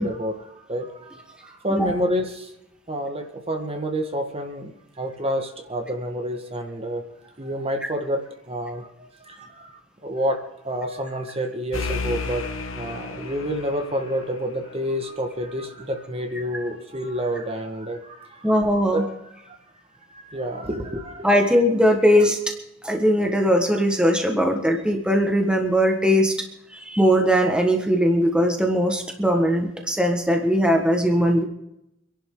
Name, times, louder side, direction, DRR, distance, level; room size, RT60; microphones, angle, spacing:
voice 1, 0.0-2.5 2.9-7.1 7.4-10.4 10.6-18.5 18.9-19.1 19.4-19.6 20.1-21.3, equal, 30° right, 4 dB, 1.6 m, -29 dB
sound 1, 11.7-15.2, left 4 dB, 75° left, 1.4 m, -33 dB
voice 2, 18.4-19.1 21.2-22.5 22.8-26.3 26.7-31.4, equal, 5° right, 2 dB, 1.6 m, -20 dB
26.0 x 11.0 x 3.9 m, 0.84 s
head